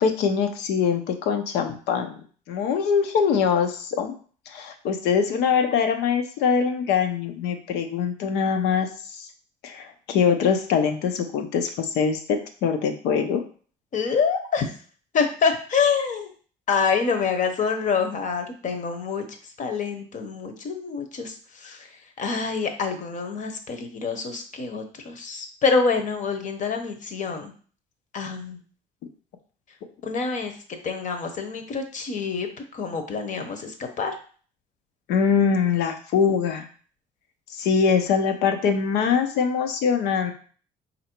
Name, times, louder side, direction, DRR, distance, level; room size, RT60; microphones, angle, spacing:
voice 1, 0.0-2.2 2.5-4.2 4.5-8.9 9.1-9.3 9.6-13.4 35.1-36.6 37.5-40.3, left 6 dB, 85° left, 6 dB, 0.7 m, -23 dB
voice 2, 13.9-14.7 15.1-16.3 16.7-27.5 28.1-28.6 30.0-30.6 30.8-34.2, left 5 dB, 45° left, 5 dB, 0.9 m, -26 dB
4.2 x 2.7 x 4.4 m, 0.42 s
cardioid pair, 110°, 17 cm